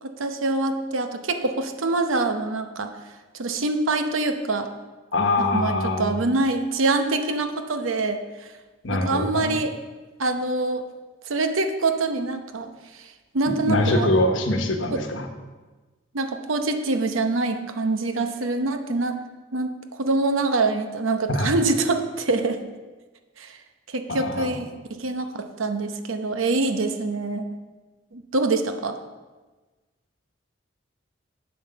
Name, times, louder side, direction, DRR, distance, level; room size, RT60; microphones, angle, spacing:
voice 1, 0.0-2.9 3.3-4.7 5.5-8.2 8.9-9.7 10.2-10.8 11.3-12.7 13.3-14.1 14.9-15.0 16.1-19.2 19.5-19.7 20.0-22.6 23.4-23.6 23.9-24.7 25.0-27.4 28.1-29.0, right 3 dB, 90° right, 7 dB, 0.9 m, -25 dB
voice 2, 5.1-6.2 8.8-9.5 13.7-15.3 21.3-21.5 24.1-24.6, left 1 dB, 75° left, 5 dB, 1.1 m, -23 dB
7.8 x 7.6 x 5.7 m, 1.2 s
head